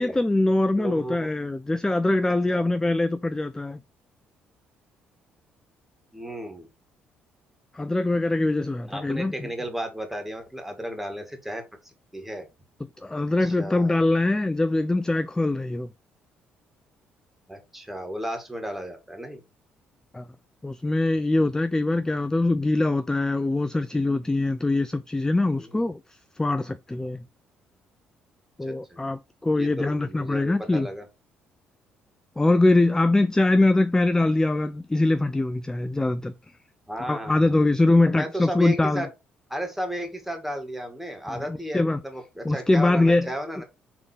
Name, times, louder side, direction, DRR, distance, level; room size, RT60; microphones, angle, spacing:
voice 1, 0.0-3.8 7.7-9.5 13.0-15.9 20.1-20.2 20.6-26.0 26.4-27.2 28.6-30.9 32.4-36.3 37.1-39.1 41.5-42.0 42.4-43.3, left 2 dB, 10° left, 0.5 m, -23 dB
voice 2, 0.8-1.3 2.5-2.7 6.1-6.7 8.9-12.5 13.4-14.0 17.5-19.4 22.1-22.2 25.6-25.8 28.6-29.0 29.5-31.1 36.9-37.7 38.0-39.1 39.5-43.6, equal, 5° right, 2.5 m, -34 dB
6.0 x 3.8 x 5.1 m
hypercardioid pair, 45°, 5 cm